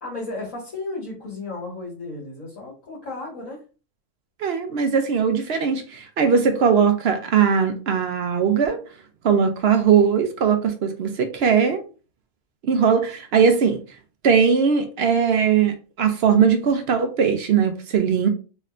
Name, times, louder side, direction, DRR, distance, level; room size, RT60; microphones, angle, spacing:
voice 1, 0.0-3.6, left 2 dB, 85° left, 2.1 m, -34 dB
voice 2, 4.4-8.8 9.2-11.8 12.7-13.8 14.2-18.3, right 6 dB, 60° right, 0.8 m, -19 dB
4.1 x 3.2 x 2.5 m
omnidirectional pair, 1.4 m